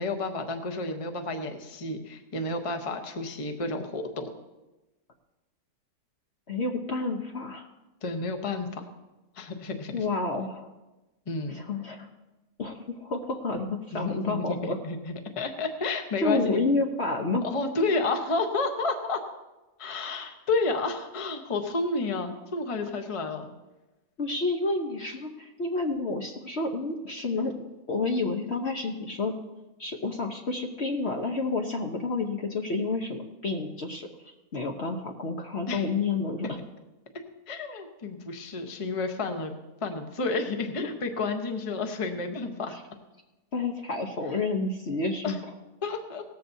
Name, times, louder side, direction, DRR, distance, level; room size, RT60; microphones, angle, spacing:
voice 1, 0.0-4.3 8.0-8.9 9.3-10.0 11.3-11.6 13.9-16.7 17.4-19.2 19.8-23.5 35.7-35.9 37.5-39.5 39.8-42.8 45.2-45.4 45.8-46.2, left 3 dB, 25° left, 5 dB, 0.9 m, -31 dB
voice 2, 6.5-7.7 9.9-10.7 11.5-12.1 12.6-14.8 16.2-17.5 24.2-29.3 29.8-36.6 43.5-45.4, left 3 dB, 50° left, 2 dB, 1.0 m, -30 dB
17.5 x 14.0 x 2.7 m, 1.1 s
omnidirectional pair, 1.6 m